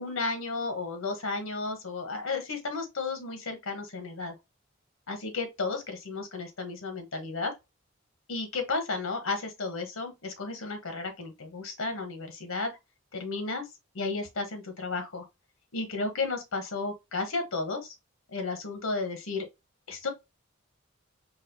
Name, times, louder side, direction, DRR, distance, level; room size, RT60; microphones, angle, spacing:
voice 1, 0.0-4.3 5.1-7.5 8.3-12.8 13.1-13.6 13.9-15.3 15.7-17.9 18.3-19.5 19.9-20.1, left 3 dB, 80° left, 0.9 m, -33 dB
4.0 x 2.3 x 2.6 m
head